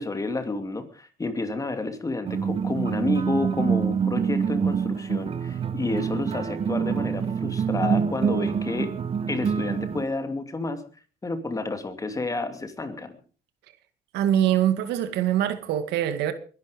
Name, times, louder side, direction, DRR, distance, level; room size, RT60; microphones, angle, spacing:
voice 1, 0.0-9.0 9.3-10.8 11.2-13.2, left 2 dB, 20° left, 2.7 m, -30 dB
sound 1, 2.2-10.0, right 7 dB, 35° right, 1.1 m, -26 dB
voice 2, 14.1-16.3, right 11 dB, 85° right, 2.1 m, -23 dB
21.5 x 11.5 x 5.2 m
cardioid pair, 110°, 17 cm